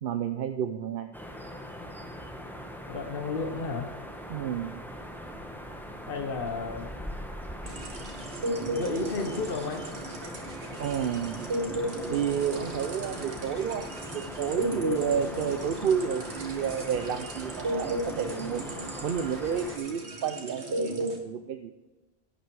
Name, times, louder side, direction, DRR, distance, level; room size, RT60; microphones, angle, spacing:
voice 1, 0.0-1.1 4.3-4.8 10.8-11.5 12.1-21.7, right 8 dB, 60° right, 8 dB, 0.8 m, -31 dB
sound 1, 1.1-19.8, equal, ahead, 1.2 m, -41 dB
voice 2, 2.9-3.9 6.1-6.9 8.7-9.9, left 3 dB, 55° left, 5 dB, 1.2 m, -32 dB
sound 2, 7.6-21.2, right 1 dB, 90° right, 2.0 m, -35 dB
11.5 x 10.0 x 4.7 m, 1.1 s
omnidirectional pair, 1.1 m